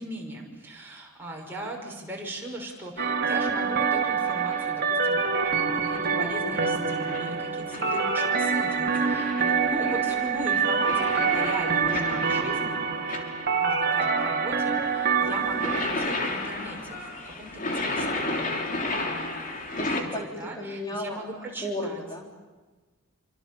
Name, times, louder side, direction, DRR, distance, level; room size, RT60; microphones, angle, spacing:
voice 1, 0.0-5.3 5.7-12.8 13.6-18.5 19.0-19.3 19.7-22.0, right 1 dB, 10° right, -2 dB, 6.2 m, -39 dB
sound 1, 3.0-15.9, right 5 dB, 50° right, 2.6 m, -26 dB
sound 2, 3.5-3.9 4.3-4.8 5.2-6.2 6.8-8.4 8.9-13.7 13.9-20.0, left 2 dB, 40° left, 3.3 m, -34 dB
voice 2, 7.8-8.4 18.5-19.2 19.8-22.4, left 1 dB, 20° left, 0 dB, 3.9 m, -36 dB
27.5 x 25.0 x 7.2 m, 1.3 s
head